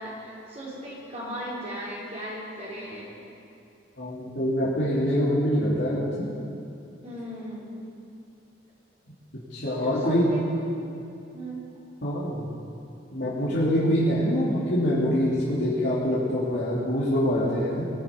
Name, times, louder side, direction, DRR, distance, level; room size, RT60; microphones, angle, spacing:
voice 1, 0.0-3.2 7.0-7.8 9.6-10.8 11.3-11.6, equal, 35° right, -7 dB, 5.0 m, -37 dB
voice 2, 4.0-6.4 9.3-10.3 12.0-12.5 13.1-17.9, equal, 70° left, -9 dB, 3.3 m, -25 dB
23.0 x 11.0 x 5.4 m, 2.6 s
head